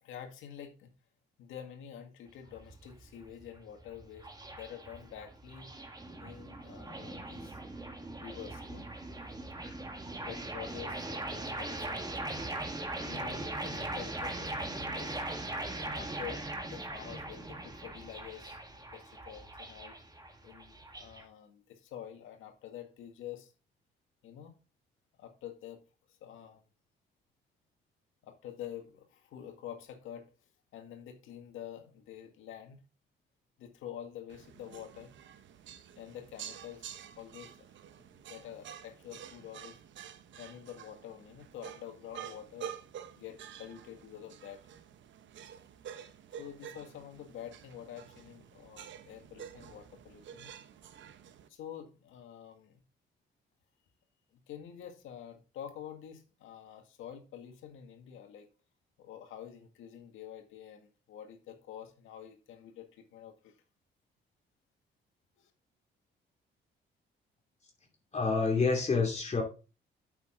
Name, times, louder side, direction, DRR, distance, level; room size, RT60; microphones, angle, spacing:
voice 1, 0.0-0.9 1.4-5.7 6.2-7.6 8.2-8.9 10.3-12.1 13.0-15.2 15.8-20.0 20.4-23.5 24.2-24.5 25.2-25.8 26.1-26.6 28.2-30.3 30.7-32.8 33.6-35.1 36.0-37.7 38.0-39.8 40.4-42.7 43.2-44.6 46.4-50.5 51.5-52.8 54.3-58.5 59.0-63.5 65.4-65.5, left 10 dB, 85° left, 1.9 m, -47 dB
sound 1, 2.3-21.2, right 2 dB, 20° right, 1.7 m, -40 dB
sound 2, 34.3-51.5, right 9 dB, 70° right, 1.0 m, -49 dB
voice 2, 68.1-69.4, left 4 dB, 35° left, 2.7 m, -28 dB
8.6 x 6.9 x 3.8 m
cardioid pair, 90°, 20 cm